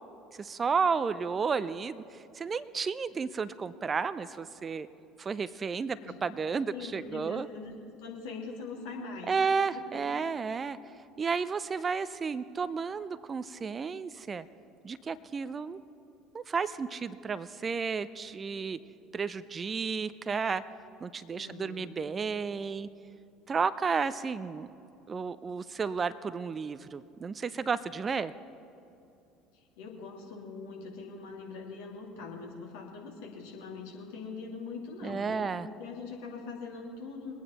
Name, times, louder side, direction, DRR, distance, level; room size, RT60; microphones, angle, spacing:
voice 1, 0.3-4.9 5.2-7.5 9.3-10.8 11.2-14.5 14.8-15.8 16.3-18.8 19.1-20.6 21.0-22.9 23.5-24.7 25.1-28.3 35.0-35.7, right 5 dB, 30° right, 15 dB, 0.5 m, -32 dB
voice 2, 6.5-9.3 9.7-9.8 21.3-21.9 29.8-37.3, left 4 dB, 65° left, -1 dB, 2.4 m, -42 dB
22.5 x 9.3 x 4.3 m, 2.7 s
figure-of-eight pair, 65°, 0 cm